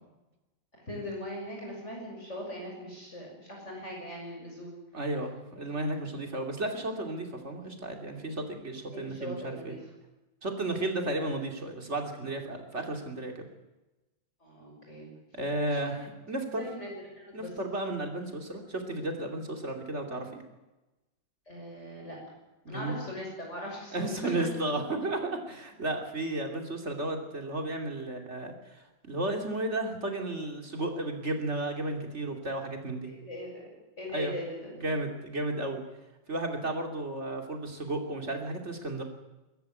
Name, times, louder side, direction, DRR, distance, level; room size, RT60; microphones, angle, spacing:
voice 1, 0.9-4.7 8.9-9.8 14.4-15.1 15.6-15.9 16.6-17.5 21.5-22.2 22.7-24.4 33.0-33.7 34.0-34.8, left 1 dB, 35° left, -1 dB, 6.4 m, -40 dB
voice 2, 4.9-9.8 10.4-13.5 15.3-16.6 17.3-20.4 22.6-23.0 23.9-33.1 34.1-34.3 34.8-35.8 36.3-39.0, right 2 dB, 35° right, 3 dB, 3.1 m, -33 dB
22.0 x 14.0 x 9.5 m, 1.0 s
omnidirectional pair, 2.0 m